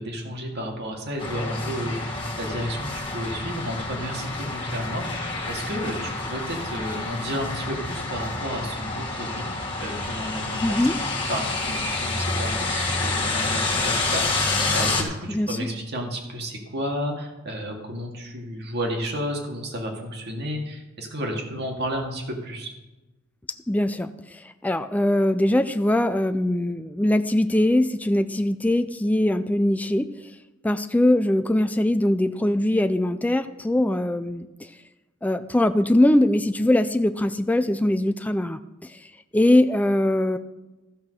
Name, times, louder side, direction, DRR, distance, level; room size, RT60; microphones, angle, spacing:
voice 1, 0.0-9.4 9.8-10.8 11.3-22.7, equal, 55° right, 2 dB, 2.1 m, -32 dB
sound 1, 1.2-15.0, left 3 dB, 25° left, 1.7 m, -28 dB
voice 2, 10.6-11.0 15.3-15.6 23.7-24.1 24.4-30.1 30.6-34.5 35.2-38.9 39.3-40.4, left 1 dB, 10° left, 9 dB, 0.3 m, -21 dB
13.5 x 5.9 x 6.5 m, 1.1 s
head